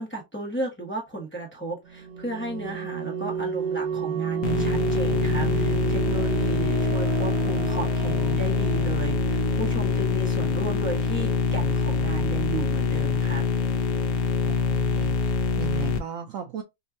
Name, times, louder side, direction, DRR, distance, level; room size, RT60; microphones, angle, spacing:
voice 1, 0.0-13.4, right 2 dB, 10° left, 0.6 m, -34 dB
sound 1, 1.9-14.4, right 8 dB, 70° right, 1.2 m, -32 dB
sound 2, 4.4-16.0, left 5 dB, 70° left, 1.1 m, -25 dB
voice 2, 14.1-16.6, right 9 dB, 90° right, 0.7 m, -37 dB
5.3 x 2.2 x 2.5 m
omnidirectional pair, 2.1 m